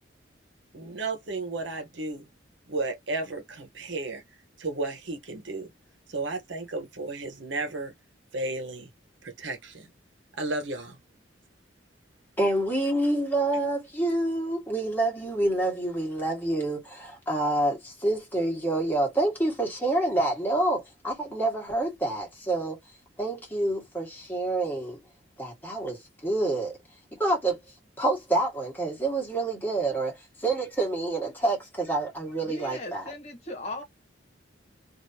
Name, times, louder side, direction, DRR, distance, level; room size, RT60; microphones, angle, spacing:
voice 1, 0.7-2.3 2.7-4.2 4.6-5.7 6.1-7.9 8.3-8.9 9.2-9.9 10.4-11.0, right 2 dB, 75° right, 1.1 m, -33 dB
voice 2, 12.4-22.8 23.2-25.0 25.4-26.8 27.2-27.6 28.0-33.0, right 2 dB, 10° left, 1.6 m, -27 dB
voice 3, 32.4-33.8, left 1 dB, 35° left, 1.4 m, -38 dB
3.3 x 2.7 x 2.8 m
head